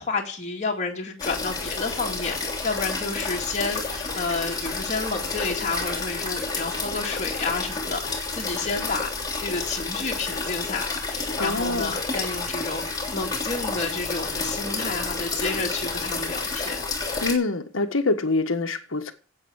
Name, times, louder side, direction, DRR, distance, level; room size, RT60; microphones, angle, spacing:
voice 1, 0.0-16.9, left 3 dB, 35° left, 2.4 m, -30 dB
sound 1, 1.2-17.3, left 3 dB, 20° left, 3.2 m, -30 dB
voice 2, 11.4-11.9 17.2-19.1, left 3 dB, 75° left, 1.6 m, -25 dB
11.0 x 8.6 x 8.1 m
head